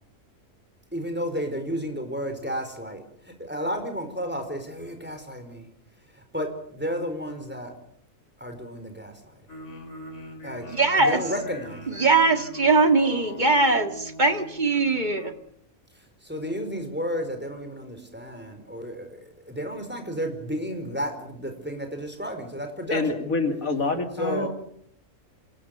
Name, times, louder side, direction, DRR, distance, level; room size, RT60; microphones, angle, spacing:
voice 1, 0.9-5.7 6.1-7.7 8.4-9.4 10.4-10.7 11.0-12.1 15.9-23.1 24.2-24.5, equal, 5° right, 6 dB, 4.6 m, -32 dB
sound 1, 9.5-15.3, left 1 dB, 55° left, 3.8 m, -41 dB
voice 2, 10.7-11.2 11.9-15.3, right 3 dB, 35° right, 7 dB, 2.0 m, -21 dB
voice 3, 22.9-24.5, left 3 dB, 75° left, 6 dB, 2.8 m, -26 dB
27.0 x 20.5 x 6.7 m, 0.68 s
omnidirectional pair, 1.5 m